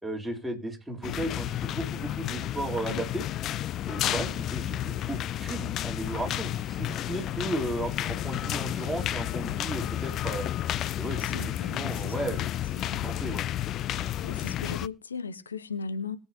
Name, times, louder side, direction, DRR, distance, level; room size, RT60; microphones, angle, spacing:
voice 1, 0.0-3.3 3.9-10.5 11.0-12.4 13.0-13.5, right 1 dB, 5° right, 3.7 m, -35 dB
sound 1, 1.0-14.9, left 12 dB, 45° left, 0.5 m, -31 dB
voice 2, 11.2-12.4 12.7-13.0 14.0-16.2, left 4 dB, 85° left, 1.1 m, -38 dB
21.5 x 8.5 x 2.9 m
figure-of-eight pair, 75°, 0 cm